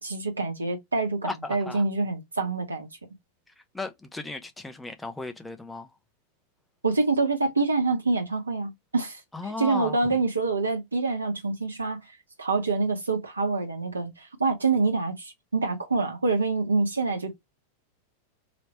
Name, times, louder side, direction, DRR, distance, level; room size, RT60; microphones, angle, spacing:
voice 1, 0.0-2.9 6.8-12.1 12.4-17.3, right 3 dB, 80° right, 1.3 m, -26 dB
voice 2, 1.2-1.8 3.7-6.0 9.3-10.0, left 2 dB, 5° left, 0.8 m, -35 dB
3.2 x 3.0 x 3.0 m
figure-of-eight pair, 90°, 0 cm